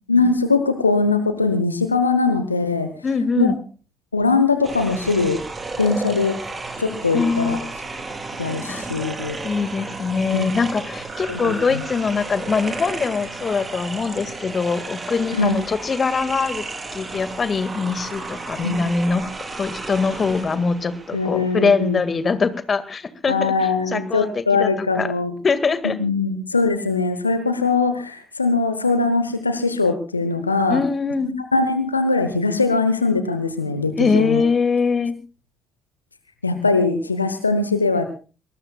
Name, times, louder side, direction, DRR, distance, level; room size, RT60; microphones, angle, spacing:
voice 1, 0.1-2.9 3.4-3.5 4.1-5.4 5.8-6.4 6.8-7.6 8.4-9.4 10.3-10.5 11.3-11.8 15.3-15.6 18.6-18.8 21.1-22.0 23.3-25.3 26.0-30.8 31.5-34.4 36.4-38.1, left 4 dB, 85° left, 9 dB, 1.0 m, -21 dB
voice 2, 3.0-3.6 7.1-7.6 8.7-8.8 9.4-16.6 16.9-23.5 23.9-25.1 25.4-26.0 30.7-31.3 34.0-35.1, left 4 dB, 40° left, 13 dB, 1.9 m, -22 dB
sound 1, 4.6-22.0, right 3 dB, 35° right, 4.3 m, -33 dB
24.0 x 20.0 x 2.4 m, 0.34 s
figure-of-eight pair, 40°, 0 cm